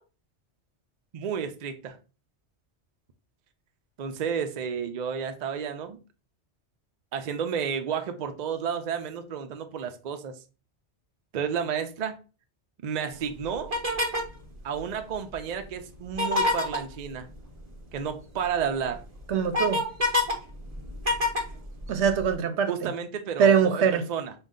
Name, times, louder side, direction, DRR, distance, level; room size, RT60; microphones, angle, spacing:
voice 1, 1.1-2.0 4.0-6.0 7.1-10.4 11.3-12.2 12.8-13.8 14.6-17.3 17.9-19.0 22.7-24.3, right 7 dB, 50° right, 0.5 m, -31 dB
sound 1, 13.7-14.3 16.1-16.8 18.4-18.5 18.9-20.3 20.7-22.3, left 2 dB, 35° right, 0.9 m, -26 dB
voice 2, 19.3-19.8 21.9-22.9 23.4-24.0, right 7 dB, 80° right, 0.9 m, -22 dB
5.2 x 2.3 x 3.6 m
omnidirectional pair, 1.2 m